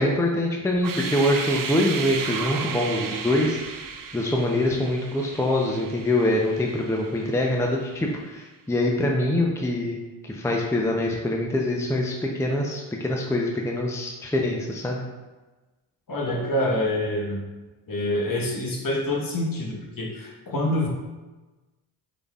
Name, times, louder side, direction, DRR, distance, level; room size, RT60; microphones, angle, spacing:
voice 1, 0.0-3.9 4.1-10.0 10.2-15.0, left 1 dB, 5° left, 0 dB, 0.6 m, -24 dB
sound 1, 0.8-7.6, right 6 dB, 45° right, 0.6 m, -34 dB
voice 2, 16.1-17.4 17.9-20.9, left 1 dB, 45° left, 0 dB, 1.3 m, -26 dB
5.1 x 4.0 x 2.4 m, 1.2 s
supercardioid pair, 55°, 47 cm